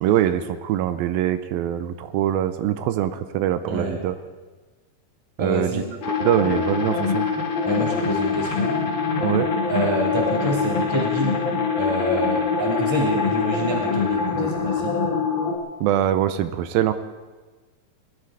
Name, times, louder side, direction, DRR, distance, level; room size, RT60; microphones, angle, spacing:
voice 1, 0.0-4.2 5.4-7.3 9.2-9.5 15.8-16.9, right 11 dB, 85° right, 11 dB, 2.4 m, -23 dB
voice 2, 5.4-5.9 7.7-8.8 9.7-11.4 11.8-15.0, right 1 dB, 10° right, -1 dB, 1.9 m, -27 dB
sound 1, 6.0-15.6, left 5 dB, 65° left, 1.2 m, -24 dB
20.5 x 11.5 x 4.9 m, 1.3 s
omnidirectional pair, 4.2 m